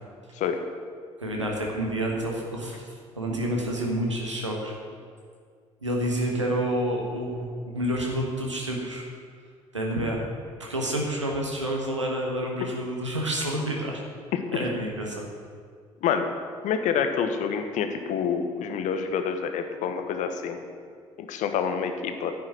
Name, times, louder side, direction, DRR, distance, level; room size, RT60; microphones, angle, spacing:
voice 1, 1.2-4.7 5.8-9.0 9.7-10.2 10.6-14.0 14.5-15.3, right 1 dB, 90° right, -1 dB, 1.5 m, -29 dB
voice 2, 16.0-16.3 16.6-20.6 21.2-22.3, left 7 dB, 55° left, 7 dB, 1.2 m, -27 dB
10.0 x 6.5 x 8.7 m, 2.1 s
figure-of-eight pair, 50°, 15 cm